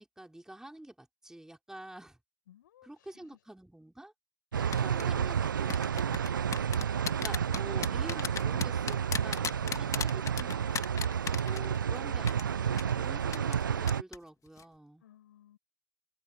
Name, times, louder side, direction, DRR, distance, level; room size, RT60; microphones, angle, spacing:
voice 1, 0.0-2.2 2.8-4.1 4.8-6.2 7.2-10.8 11.4-15.0, right 1 dB, 5° right, 5.1 m, -48 dB
voice 2, 2.5-3.4 9.6-10.1 15.0-15.6, left 12 dB, 75° left, 7.8 m, -57 dB
sound 1, 4.5-14.0, right 8 dB, 80° right, 0.9 m, -31 dB
sound 2, 4.7-5.0 5.7-12.0 12.3-12.4 12.8-12.9 13.3-13.6 13.9-14.2 14.5-14.6, left 7 dB, 30° left, 2.3 m, -35 dB
figure-of-eight pair, 70°, 10 cm